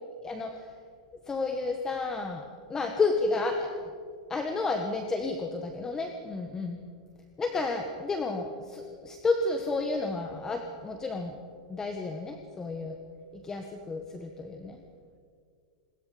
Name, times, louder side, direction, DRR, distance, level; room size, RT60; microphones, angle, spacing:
voice 1, 0.2-0.6 1.3-3.7 4.3-6.8 7.4-11.4 11.7-13.0 13.4-14.8, left 3 dB, 15° left, 4 dB, 1.5 m, -31 dB
27.0 x 21.0 x 5.2 m, 2.1 s
supercardioid pair, 145°, 4 cm